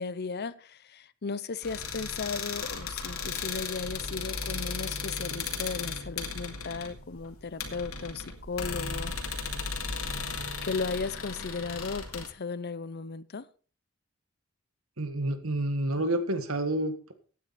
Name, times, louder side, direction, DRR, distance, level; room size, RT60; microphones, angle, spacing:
voice 1, 0.0-9.4 10.6-13.5, left 4 dB, 50° left, 17 dB, 0.7 m, -36 dB
sound 1, 1.6-12.3, left 5 dB, 90° left, 2.3 m, -36 dB
voice 2, 15.0-17.1, right 1 dB, 80° right, 9 dB, 1.8 m, -29 dB
15.5 x 9.4 x 4.2 m, 0.40 s
head